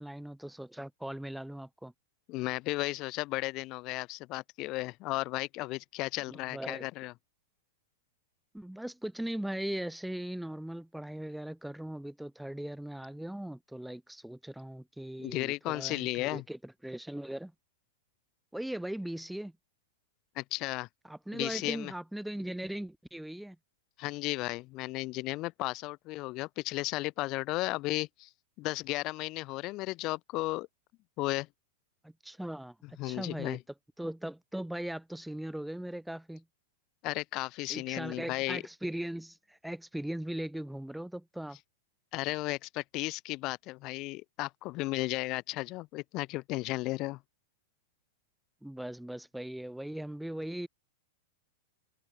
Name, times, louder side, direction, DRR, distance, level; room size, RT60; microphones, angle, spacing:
voice 1, 0.0-1.9 6.3-6.9 8.5-17.5 18.5-19.5 21.0-23.6 32.0-33.6 34.0-36.4 37.7-41.6 48.6-50.7, right 1 dB, ahead, 0.8 m, -39 dB
voice 2, 2.3-7.1 15.2-16.4 20.4-20.9 21.3-21.9 24.0-28.3 28.6-30.7 31.2-31.5 33.0-33.6 37.0-38.6 42.1-47.2, left 20 dB, 35° left, 0.6 m, -34 dB
figure-of-eight pair, 95°, 0 cm